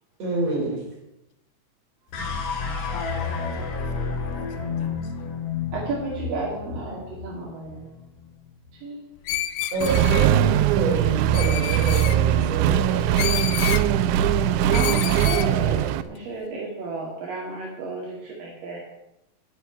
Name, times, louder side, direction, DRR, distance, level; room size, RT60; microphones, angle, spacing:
voice 1, 0.2-0.9 9.7-13.2, right 3 dB, 45° right, -3 dB, 5.3 m, -28 dB
sound 1, 2.1-8.5, left 5 dB, 45° left, 3.0 m, -31 dB
voice 2, 2.8-5.3, left 6 dB, 60° left, 6 dB, 3.0 m, -43 dB
voice 3, 5.7-7.9 8.7-9.1 14.6-18.8, right 3 dB, 70° right, -3 dB, 3.9 m, -32 dB
Screech, 9.3-10.3 11.3-12.2 13.2-13.9 14.7-15.5, left 13 dB, 90° left, 2.6 m, -29 dB
Accelerating revving vroom, 9.8-16.0, right 10 dB, 85° right, 1.7 m, -21 dB
11.0 x 7.9 x 9.0 m, 0.89 s
omnidirectional pair, 4.2 m